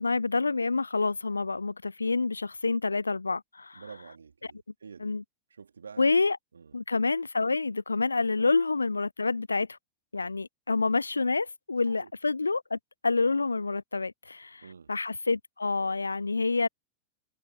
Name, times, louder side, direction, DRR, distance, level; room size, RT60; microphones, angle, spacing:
voice 1, 0.0-3.8 4.4-4.5 5.0-5.2 6.0-6.4 6.7-9.7 10.1-12.8 13.0-16.7, left 3 dB, 80° left, 0.4 m, -28 dB
voice 2, 3.7-5.1 5.6-6.1 6.5-6.8 8.4-8.5 11.9-12.1 14.6-14.9, right 5 dB, 75° right, 3.0 m, -48 dB
figure-of-eight pair, 90°, 0 cm